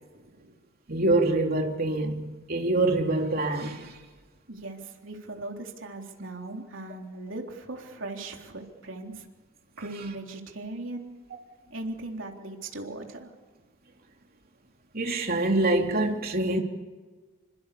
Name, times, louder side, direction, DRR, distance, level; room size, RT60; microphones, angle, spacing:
voice 1, 0.0-0.6 4.5-9.2 9.7-11.1 11.7-13.3, right 2 dB, 70° right, 3.9 m, -39 dB
voice 2, 0.9-4.0 14.9-16.6, right 2 dB, 50° right, 3.4 m, -25 dB
28.0 x 25.5 x 7.1 m
head